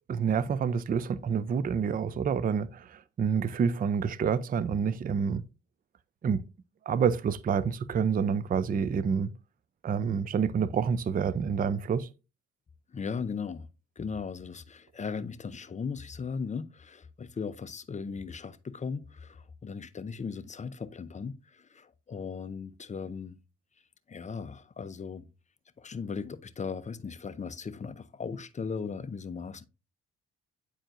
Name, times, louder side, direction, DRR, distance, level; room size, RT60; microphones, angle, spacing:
voice 1, 0.1-5.4 6.2-6.4 6.9-9.3 9.8-12.1, right 6 dB, 30° right, 0.4 m, -28 dB
voice 2, 12.9-13.7 14.0-23.4 24.1-25.3 25.8-29.7, left 5 dB, 25° left, 0.5 m, -37 dB
9.0 x 4.4 x 2.5 m
cardioid pair, 90°, 30 cm